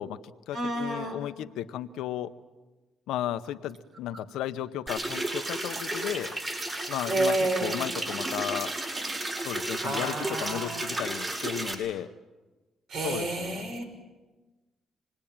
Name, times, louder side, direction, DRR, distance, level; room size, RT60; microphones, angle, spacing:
voice 1, 0.0-2.3 3.1-6.3 6.9-8.7 9.4-12.1 13.0-13.8, left 12 dB, 90° left, 11 dB, 1.0 m, -34 dB
voice 2, 0.5-1.2 7.1-7.8 9.4-11.0 12.9-13.8, right 2 dB, 65° right, 5 dB, 5.8 m, -30 dB
sound 1, 4.9-11.7, right 2 dB, 30° right, 6.4 m, -33 dB
27.5 x 20.5 x 8.8 m, 1.2 s
cardioid pair, 90°, 0 cm